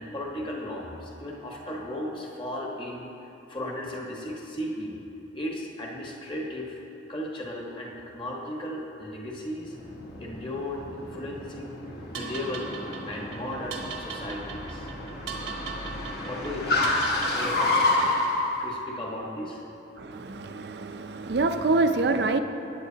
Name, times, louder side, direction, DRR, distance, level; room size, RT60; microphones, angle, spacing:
voice 1, 0.0-3.1 3.5-5.0 5.3-6.8 7.1-9.8 10.2-11.8 12.1-12.7 13.0-14.9 15.9-16.9 17.3-18.2 18.6-19.6 21.6-21.7, left 1 dB, 25° left, -2 dB, 1.3 m, -36 dB
Car, 9.6-18.6, left 2 dB, 50° left, 1.1 m, -30 dB
sound 1, 12.1-18.4, right 4 dB, 85° right, 1.1 m, -39 dB
voice 2, 20.0-22.4, right 3 dB, 55° right, 8 dB, 0.5 m, -26 dB
15.5 x 9.0 x 2.8 m, 2.9 s
head